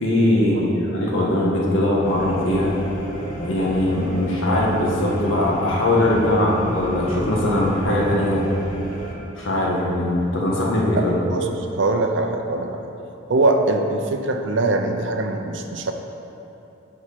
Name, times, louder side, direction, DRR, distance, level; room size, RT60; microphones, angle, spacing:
voice 1, 0.0-2.7 3.3-8.4 9.4-11.2, left 1 dB, 85° left, -4 dB, 1.5 m, -20 dB
sound 1, 2.0-9.1, right 1 dB, 40° left, 1.3 m, -32 dB
voice 2, 11.3-12.8 13.3-15.9, right 2 dB, 65° right, 4 dB, 0.6 m, -22 dB
8.5 x 4.7 x 5.0 m, 2.9 s
head